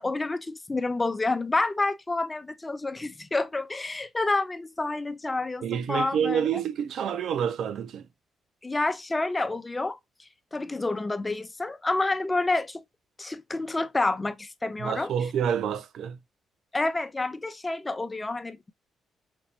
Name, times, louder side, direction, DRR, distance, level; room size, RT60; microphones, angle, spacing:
voice 1, 0.0-6.6 8.6-10.0 10.5-12.8 13.2-15.1 16.7-18.7, left 2 dB, 20° left, 0.5 m, -29 dB
voice 2, 5.6-8.1 14.8-16.2, right 8 dB, 70° right, 0.4 m, -28 dB
5.4 x 3.0 x 2.7 m
cardioid pair, 90°, 0 cm